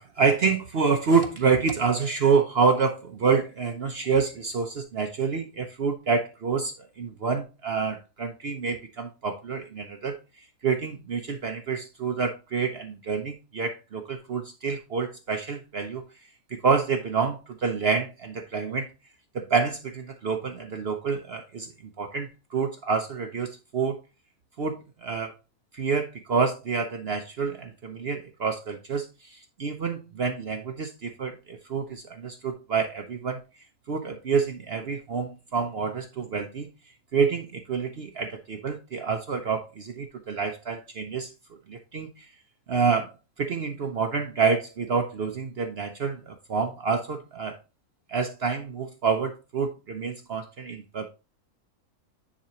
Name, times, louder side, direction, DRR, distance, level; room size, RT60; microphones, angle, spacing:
voice 1, 0.0-16.0 16.5-18.9 19.3-24.0 24.6-25.3 25.7-33.4 33.9-36.7 37.1-41.3 41.7-42.3 42.7-43.1 43.4-47.6 48.1-51.1, right 5 dB, 55° right, 0.7 m, -27 dB
9.8 x 4.1 x 2.9 m
omnidirectional pair, 1.6 m